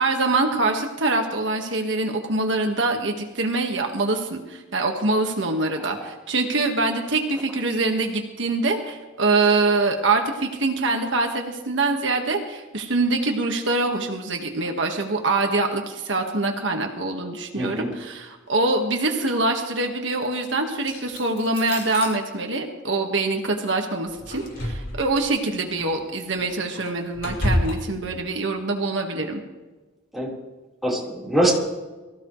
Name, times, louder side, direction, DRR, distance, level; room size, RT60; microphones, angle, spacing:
voice 1, 0.0-29.4, right 3 dB, 65° right, 3 dB, 1.7 m, -24 dB
voice 2, 5.8-6.1 17.5-17.9 30.1-30.3 30.8-31.5, right 1 dB, ahead, -5 dB, 4.2 m, -24 dB
sound 1, 20.8-22.1 24.1-25.2 25.8-25.9 26.4-27.7, left 1 dB, 50° left, 6.3 m, -29 dB
24.0 x 15.5 x 3.2 m, 1.2 s
head